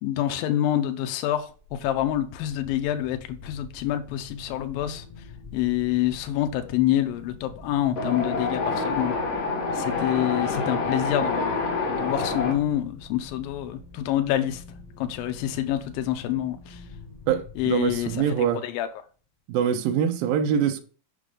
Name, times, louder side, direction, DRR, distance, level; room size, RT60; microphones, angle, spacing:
voice 1, 0.0-5.0 5.5-9.2 9.7-11.6 11.9-14.6 15.0-16.8 17.6-18.9, left 12 dB, 85° left, 2.5 m, -27 dB
sound 1, 1.4-18.7, left 2 dB, 35° left, 0.6 m, -46 dB
Wind, 8.0-12.5, left 3 dB, 50° left, 2.2 m, -27 dB
voice 2, 17.3-18.6 19.5-20.8, right 8 dB, 85° right, 2.6 m, -24 dB
6.7 x 5.0 x 5.2 m
omnidirectional pair, 4.0 m